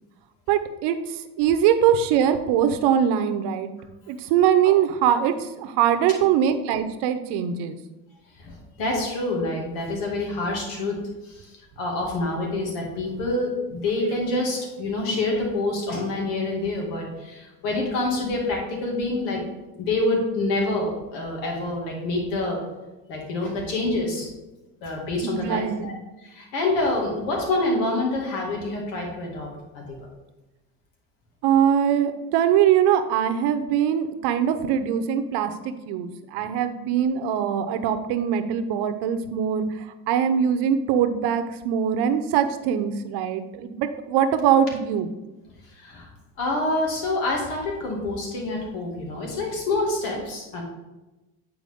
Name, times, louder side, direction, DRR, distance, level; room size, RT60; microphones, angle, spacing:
voice 1, 0.5-3.7 4.1-7.8 25.2-26.0 31.4-45.1, right 9 dB, 75° right, 9 dB, 0.8 m, -22 dB
voice 2, 8.4-11.0 11.2-19.4 19.8-22.6 23.1-24.3 24.8-25.9 26.2-29.5 29.7-30.0 36.4-36.5 45.7-46.1 46.4-50.6, left 2 dB, 85° left, 0 dB, 2.3 m, -27 dB
9.0 x 4.7 x 3.6 m, 1.1 s
supercardioid pair, 90°, 40 cm